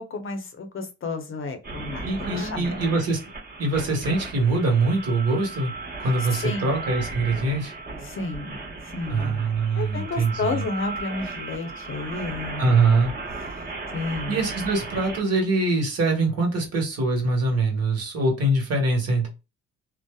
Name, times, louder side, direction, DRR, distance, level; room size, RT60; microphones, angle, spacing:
voice 1, 0.0-2.1 2.3-2.8 6.3-6.7 8.0-8.6 8.9-9.4 9.7-12.8 13.9-14.5, left 3 dB, 45° left, 6 dB, 0.7 m, -31 dB
sound 1, 1.6-15.2, right 3 dB, 30° right, 1.1 m, -36 dB
voice 2, 2.0-3.2 3.6-5.7 6.0-7.7 9.1-10.6 12.6-13.1 14.3-19.3, right 3 dB, 55° right, 1 dB, 1.3 m, -23 dB
2.7 x 2.0 x 2.2 m, 0.27 s
cardioid pair, 90°, 30 cm